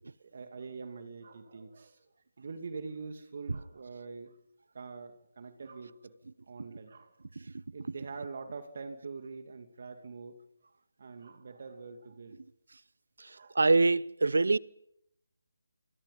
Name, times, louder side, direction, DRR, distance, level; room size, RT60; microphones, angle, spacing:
voice 1, 0.2-2.0 2.4-4.4 4.7-6.1 6.5-7.2 7.7-10.4 11.0-12.4 13.3-13.7, right 4 dB, 50° right, 2.6 m, -44 dB
voice 2, 13.2-14.6, right 3 dB, 70° right, 0.8 m, -25 dB
27.0 x 26.5 x 5.6 m
figure-of-eight pair, 160°, 0 cm